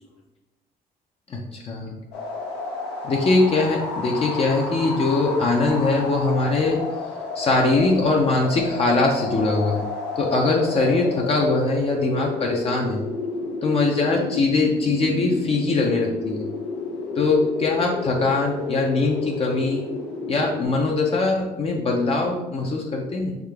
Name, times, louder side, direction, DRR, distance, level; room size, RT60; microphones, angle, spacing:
voice 1, 1.3-2.0 3.0-6.8 7.3-9.8 10.2-13.0 13.6-16.5 17.2-19.9 20.3-23.4, left 3 dB, 35° left, 0 dB, 0.5 m, -22 dB
sound 1, 2.1-20.6, left 3 dB, 90° left, 1.0 m, -31 dB
3.6 x 2.8 x 3.3 m, 1.0 s
cardioid pair, 110°, 17 cm